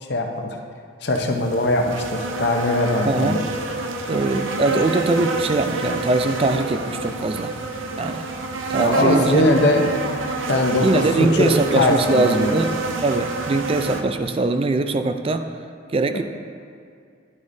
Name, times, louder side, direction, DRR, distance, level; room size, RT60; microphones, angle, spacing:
voice 1, 0.0-0.6 1.0-3.5 8.8-9.9 10.5-11.0 11.4-12.5 16.1-16.2, left 1 dB, 55° left, 2 dB, 0.8 m, -21 dB
sound 1, 1.1-14.0, right 3 dB, 80° right, 0.6 m, -28 dB
voice 2, 3.1-3.4 4.1-7.5 8.0-8.3 8.7-9.4 10.8-15.5 15.9-16.2, right 3 dB, 30° right, 8 dB, 0.3 m, -22 dB
11.0 x 8.3 x 2.7 m, 2.3 s
head